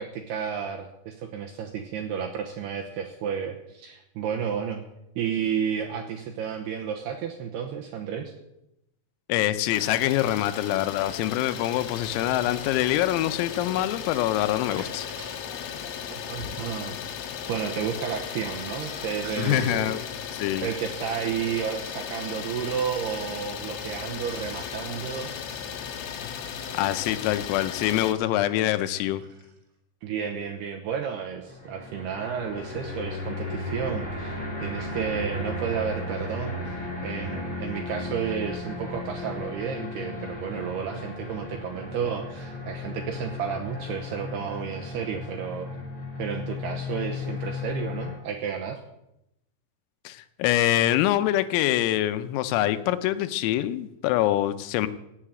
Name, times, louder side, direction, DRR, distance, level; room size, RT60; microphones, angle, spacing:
voice 1, 0.0-4.8 5.2-8.3 16.1-17.2 17.5-20.3 20.6-25.3 30.0-45.7 46.2-48.8, right 7 dB, 75° right, 3 dB, 2.4 m, -32 dB
voice 2, 9.3-15.1 19.4-20.0 20.3-20.7 26.2-26.3 26.7-29.2 50.1-54.9, left 13 dB, 85° left, 11 dB, 3.5 m, -25 dB
Idling, 9.7-28.1, left 8 dB, 70° left, 3.1 m, -36 dB
Sink (filling or washing), 14.5-29.6, right 4 dB, 60° right, 5.3 m, -50 dB
sound 1, 31.4-48.2, left 2 dB, 10° left, 3.9 m, -35 dB
16.5 x 7.5 x 8.8 m, 0.86 s
omnidirectional pair, 5.9 m